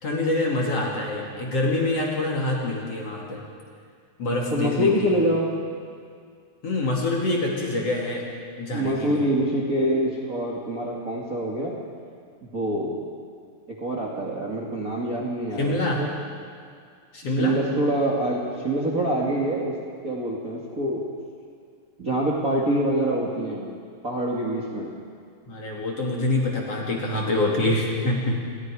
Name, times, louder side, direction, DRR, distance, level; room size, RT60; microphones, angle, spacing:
voice 1, 0.0-3.4 4.2-5.2 6.6-8.3 8.6-9.2 15.6-16.0 17.1-17.6 25.5-28.4, left 2 dB, 40° left, -2 dB, 3.0 m, -25 dB
voice 2, 0.7-1.4 4.5-5.5 8.7-11.7 12.5-13.0 13.8-16.1 17.2-19.7 20.0-21.0 22.0-23.7 24.0-24.9, right 1 dB, 30° right, -3 dB, 1.6 m, -25 dB
28.5 x 21.0 x 4.9 m, 2.2 s
omnidirectional pair, 4.9 m